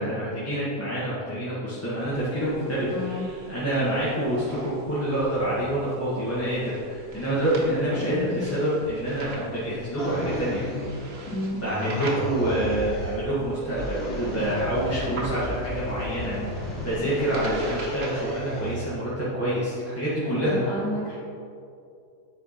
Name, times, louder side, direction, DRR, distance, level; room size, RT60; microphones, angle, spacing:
voice 1, 0.0-3.2 3.5-10.7 11.5-20.6, right 1 dB, 10° left, -11 dB, 1.3 m, -27 dB
sound 1, 2.0-19.0, right 2 dB, 50° right, 0.9 m, -43 dB
voice 2, 2.9-3.2 7.9-8.5 11.3-11.6 15.0-15.2 16.3-16.5 17.4-17.6 20.3-21.2, left 2 dB, 85° left, -8 dB, 1.8 m, -32 dB
sound 2, 10.0-11.3 11.6-13.3 13.7-18.9, left 1 dB, 55° left, 2.5 m, -34 dB
9.5 x 4.5 x 4.2 m, 2.5 s
omnidirectional pair, 1.8 m